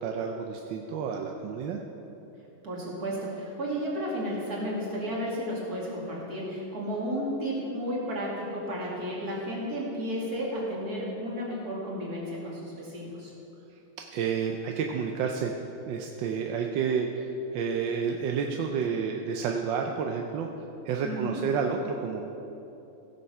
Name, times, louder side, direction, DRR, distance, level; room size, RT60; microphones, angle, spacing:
voice 1, 0.0-1.8 14.1-15.5 15.9-20.5 20.8-22.2, right 6 dB, 70° right, 2 dB, 1.2 m, -30 dB
voice 2, 2.6-13.3 21.0-21.5, equal, 45° right, -4 dB, 2.7 m, -33 dB
16.0 x 6.8 x 5.6 m, 2.9 s
omnidirectional pair, 2.4 m